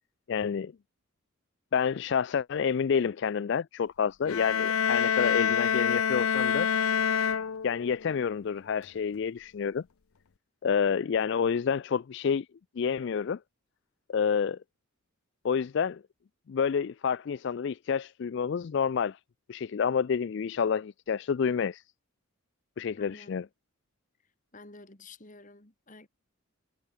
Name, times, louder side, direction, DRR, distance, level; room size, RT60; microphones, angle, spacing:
voice 1, 0.3-0.7 1.7-6.7 7.6-9.8 10.6-12.5 12.8-13.4 14.1-14.6 15.4-16.0 16.5-19.2 19.5-21.8 22.8-23.5, left 6 dB, 55° left, 0.3 m, -28 dB
sound 1, 4.2-8.1, left 7 dB, 80° left, 0.7 m, -27 dB
voice 2, 23.0-23.5 24.5-26.1, left 3 dB, 35° left, 2.2 m, -50 dB
head